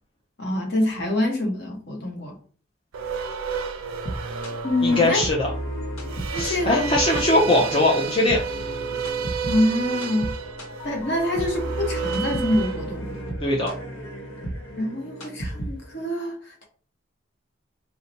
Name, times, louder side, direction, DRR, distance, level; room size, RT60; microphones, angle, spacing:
voice 1, 0.4-2.4 4.6-5.2 6.3-6.9 9.4-10.4 10.8-13.2 14.8-16.6, left 1 dB, 50° left, 1 dB, 1.0 m, -25 dB
sound 1, 2.9-13.2, right 6 dB, 85° right, 0.4 m, -32 dB
sound 2, 3.8-16.1, right 1 dB, 85° left, 1.1 m, -34 dB
voice 2, 4.8-5.5 6.4-8.4 13.4-13.7, left 2 dB, 25° left, -2 dB, 0.5 m, -21 dB
2.8 x 2.1 x 3.9 m, 0.41 s
head